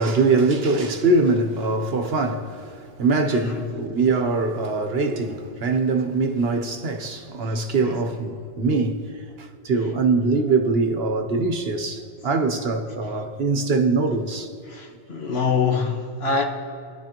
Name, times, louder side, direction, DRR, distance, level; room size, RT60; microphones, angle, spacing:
voice 1, 0.0-9.0 9.4-14.5, right 3 dB, 70° right, 1.2 m, -22 dB
voice 2, 3.3-3.6 7.8-7.9 14.7-16.4, left 5 dB, 75° left, 1.6 m, -25 dB
24.0 x 10.5 x 3.0 m
omnidirectional pair, 1.1 m